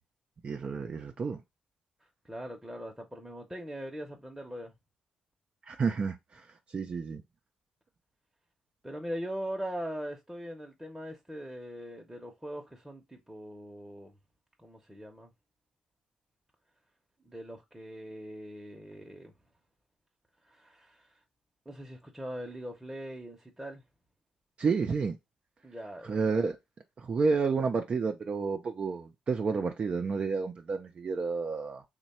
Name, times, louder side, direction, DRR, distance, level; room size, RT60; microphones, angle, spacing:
voice 1, 0.4-1.4 5.7-6.4 6.7-7.2 24.6-25.2 26.0-26.6 27.0-31.8, right 4 dB, 50° right, 0.4 m, -30 dB
voice 2, 2.2-4.7 8.8-14.1 14.6-15.3 17.2-19.3 20.5-21.2 21.7-23.8 25.6-26.2, equal, 5° right, 0.8 m, -41 dB
3.1 x 2.2 x 4.1 m
supercardioid pair, 60°, 3 cm